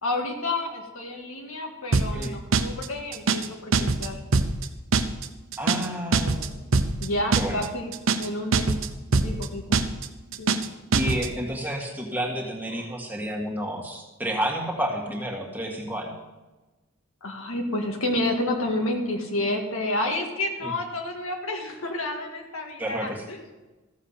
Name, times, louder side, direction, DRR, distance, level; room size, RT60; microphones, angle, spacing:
voice 1, 0.0-4.2 7.0-7.9 8.2-8.7 9.2-9.8 10.4-10.6 11.0-11.2 12.7-12.8 17.2-23.4, left 1 dB, 75° left, 2 dB, 1.8 m, -30 dB
sound 1, 1.9-2.3 2.5-2.9 3.1-3.5 3.7-4.1 4.3-4.7 4.9-5.3 5.5-5.9 6.1-6.5 6.7-7.1 7.3-7.7 7.9-8.3 8.5-8.9 9.1-9.5 9.7-10.1 10.3-10.7 10.9-11.3, right 4 dB, 65° right, 0.8 m, -22 dB
voice 2, 5.6-6.7 7.4-7.7 10.9-16.2 20.6-20.7 22.8-23.2, equal, 10° right, -1 dB, 1.7 m, -30 dB
14.0 x 7.2 x 5.7 m, 1.1 s
head